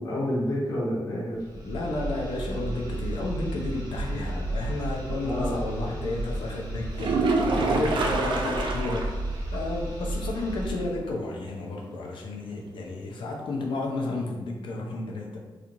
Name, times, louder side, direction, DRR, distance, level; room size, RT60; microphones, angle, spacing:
voice 1, 0.0-1.4 4.0-4.3 5.2-5.6 5.8-5.9 7.9-8.1, left 1 dB, 40° left, -9 dB, 0.8 m, -30 dB
sound 1, 1.3-11.0, right 2 dB, 45° right, 0.8 m, -33 dB
voice 2, 1.6-7.3 7.6-9.1 9.5-15.4, left 2 dB, 75° left, 0 dB, 0.5 m, -32 dB
sound 2, 6.9-9.2 9.5-9.6 10.1-10.2 13.9-14.0, right 3 dB, 70° right, 0.3 m, -26 dB
2.9 x 2.4 x 2.5 m, 1.2 s
wide cardioid pair, 155°, 9 cm